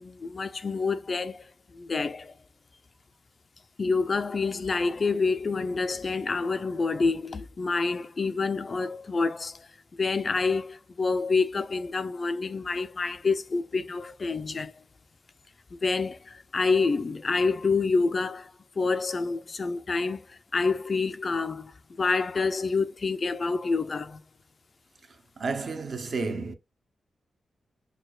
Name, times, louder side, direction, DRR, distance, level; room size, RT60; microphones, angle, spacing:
voice 1, 0.0-1.4 1.7-2.3 3.8-9.7 10.0-14.7 15.7-21.7 22.0-24.2, left 4 dB, 40° left, 0.4 m, -27 dB
voice 2, 25.4-26.5, right 4 dB, 55° right, 0.7 m, -31 dB
6.4 x 2.2 x 2.3 m
wide cardioid pair, 115°, 0 cm